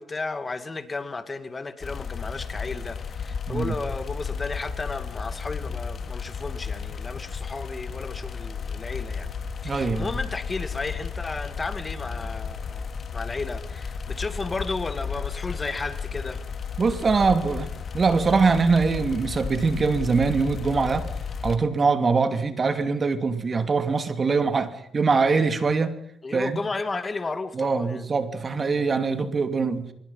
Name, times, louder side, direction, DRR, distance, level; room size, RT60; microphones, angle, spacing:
voice 1, 0.0-9.3 9.6-16.4 26.2-28.0, left 3 dB, 25° left, 2.3 m, -33 dB
sound 1, 1.8-21.6, left 6 dB, 50° left, 2.5 m, -33 dB
voice 2, 9.6-10.1 16.8-21.1 21.4-26.0 26.3-26.6 27.5-29.9, right 4 dB, 35° right, 2.6 m, -23 dB
24.5 x 22.5 x 5.7 m
cardioid pair, 90°, 0 cm